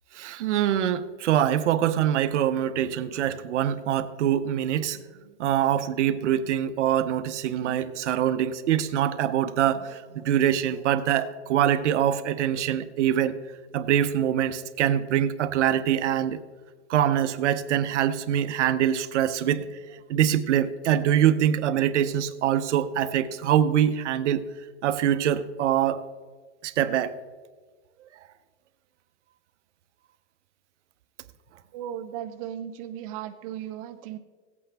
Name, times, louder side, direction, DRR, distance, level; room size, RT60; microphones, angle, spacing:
voice 1, 0.1-5.0 5.4-13.4 13.7-16.4 16.9-19.7 20.1-24.5 24.8-26.0 26.6-27.1, right 10 dB, 75° right, 12 dB, 0.8 m, -24 dB
voice 2, 7.4-7.9 31.7-34.2, right 10 dB, 30° right, 7 dB, 0.4 m, -37 dB
17.0 x 8.4 x 3.4 m, 1.5 s
supercardioid pair, 155°, 36 cm